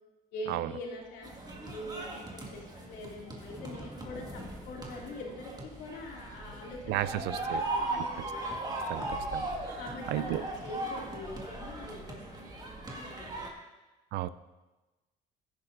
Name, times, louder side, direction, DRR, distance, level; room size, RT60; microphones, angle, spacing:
voice 1, 0.3-8.2 9.7-13.5, left 1 dB, 85° left, -2 dB, 2.9 m, -44 dB
sound 1, 0.9-11.6, left 1 dB, 5° right, 2.2 m, -54 dB
sound 2, 1.2-13.5, right 2 dB, 25° right, 1.9 m, -38 dB
voice 2, 6.9-7.6 7.9-8.3 8.9-9.8 10.1-10.4 14.1-14.3, right 14 dB, 85° right, 16 dB, 0.4 m, -34 dB
15.5 x 10.5 x 2.6 m, 1.1 s
cardioid pair, 110°, 17 cm